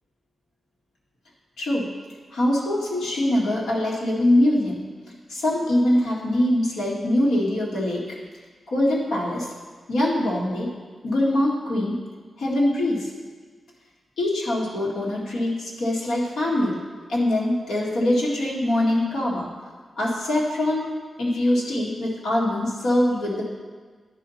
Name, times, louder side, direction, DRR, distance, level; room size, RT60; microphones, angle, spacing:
voice 1, 1.6-1.9 2.3-4.8 5.3-8.0 8.7-9.5 9.9-10.7 11.0-12.0 12.4-13.1 14.2-16.8 17.1-19.5 20.0-20.9 21.2-23.4, left 1 dB, 85° left, -4 dB, 2.0 m, -23 dB
11.0 x 4.1 x 5.7 m, 1.5 s
wide cardioid pair, 130°, 0 cm